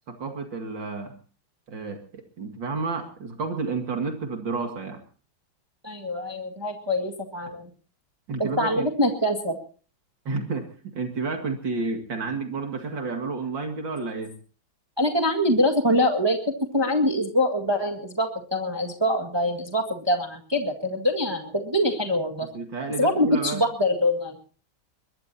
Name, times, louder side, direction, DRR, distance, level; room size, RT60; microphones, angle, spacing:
voice 1, 0.1-1.1 1.7-5.0 8.3-8.9 10.2-14.3 22.5-23.6, right 4 dB, 70° right, 4 dB, 3.0 m, -31 dB
voice 2, 5.8-7.7 8.4-9.6 15.0-16.4 16.7-22.5 23.0-24.4, left 1 dB, 15° right, 3 dB, 1.9 m, -24 dB
22.5 x 21.0 x 2.8 m, 0.39 s
omnidirectional pair, 2.1 m